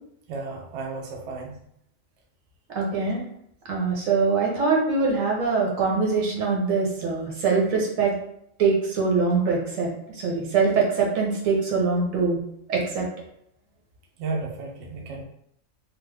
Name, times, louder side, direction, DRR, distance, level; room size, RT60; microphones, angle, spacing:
voice 1, 0.3-1.6 14.2-15.2, right 3 dB, 65° right, 1 dB, 0.8 m, -33 dB
voice 2, 2.7-3.2 3.7-8.1 8.6-9.9 10.1-12.4 12.7-13.1, right 4 dB, 80° right, -2 dB, 1.2 m, -23 dB
3.0 x 2.1 x 3.2 m, 0.73 s
omnidirectional pair, 1.4 m